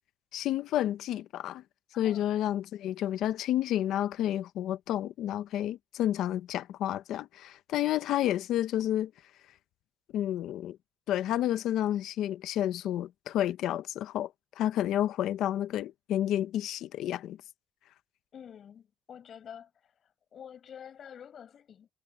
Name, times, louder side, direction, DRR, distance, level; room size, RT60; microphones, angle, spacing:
voice 1, 0.3-1.6 2.0-9.1 10.1-10.8 11.1-17.4, left 12 dB, 85° left, 0.7 m, -30 dB
voice 2, 1.9-2.4 18.3-21.9, left 8 dB, 60° left, 7.1 m, -48 dB
cardioid pair, 90°, 0 cm